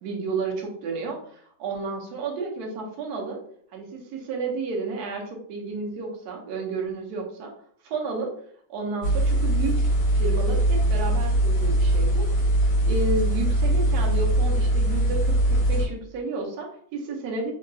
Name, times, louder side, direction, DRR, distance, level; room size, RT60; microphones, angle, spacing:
voice 1, 0.0-3.4 3.7-7.5 7.8-8.3 8.7-12.5 12.8-17.5, right 3 dB, 70° right, 0 dB, 1.1 m, -31 dB
sound 1, 9.0-15.9, right 1 dB, 70° left, 1.4 m, -21 dB
3.7 x 2.3 x 2.3 m, 0.63 s
omnidirectional pair, 1.9 m